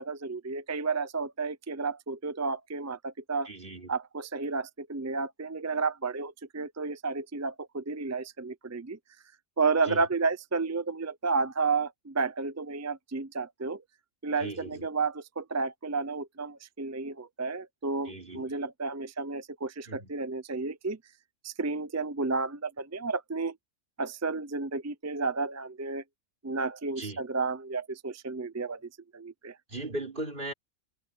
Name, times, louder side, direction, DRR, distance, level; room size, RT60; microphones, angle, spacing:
voice 1, 0.0-3.5 3.9-9.0 9.6-13.8 14.2-21.0 21.4-23.6 24.0-26.0 26.4-29.6, right 4 dB, 25° right, 0.3 m, -32 dB
voice 2, 3.5-3.9 9.8-10.0 14.4-14.9 18.0-18.5 19.9-20.1 27.0-27.2 29.7-30.5, right 2 dB, 45° right, 3.8 m, -38 dB
open air
omnidirectional pair, 1.3 m